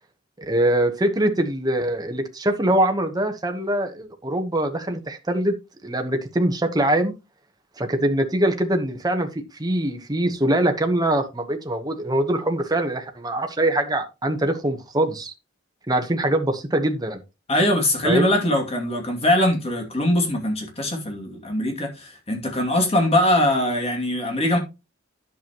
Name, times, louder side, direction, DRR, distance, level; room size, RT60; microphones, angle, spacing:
voice 1, 0.4-5.5 5.8-7.1 7.8-9.3 9.6-15.3 15.9-17.2 18.0-18.3, right 1 dB, 20° right, 1.1 m, -23 dB
voice 2, 17.5-24.6, left 1 dB, 30° left, 2.5 m, -22 dB
10.5 x 7.1 x 3.0 m
head